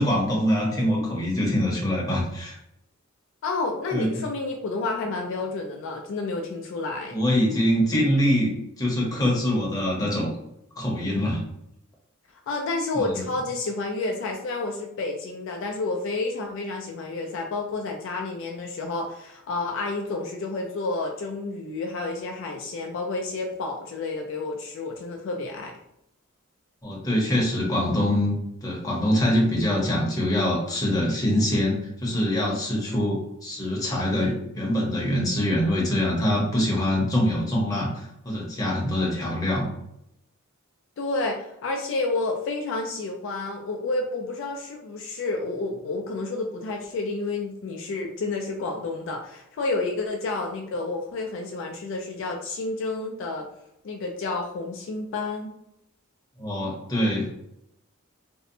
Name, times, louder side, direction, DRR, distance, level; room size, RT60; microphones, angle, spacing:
voice 1, 0.0-2.5 3.9-4.2 7.1-10.3 10.8-11.4 12.9-13.2 26.8-28.4 28.6-39.7 56.4-57.3, left 1 dB, 15° left, -3 dB, 0.7 m, -24 dB
voice 2, 3.4-7.2 12.5-25.7 41.0-53.5 53.8-55.5, left 3 dB, 60° left, 1 dB, 0.3 m, -30 dB
2.6 x 2.0 x 2.6 m, 0.79 s
head